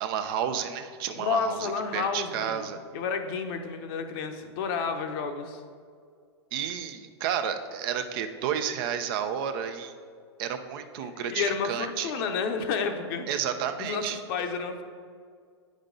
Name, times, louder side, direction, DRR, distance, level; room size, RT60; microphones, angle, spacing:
voice 1, 0.0-2.8 6.5-9.9 10.4-12.1 13.3-14.2, right 8 dB, 55° right, 8 dB, 0.7 m, -31 dB
voice 2, 1.1-5.6 11.0-13.4 13.8-14.8, left 5 dB, 55° left, 6 dB, 0.9 m, -31 dB
8.8 x 5.2 x 3.9 m, 2.1 s
hypercardioid pair, 115°, 15 cm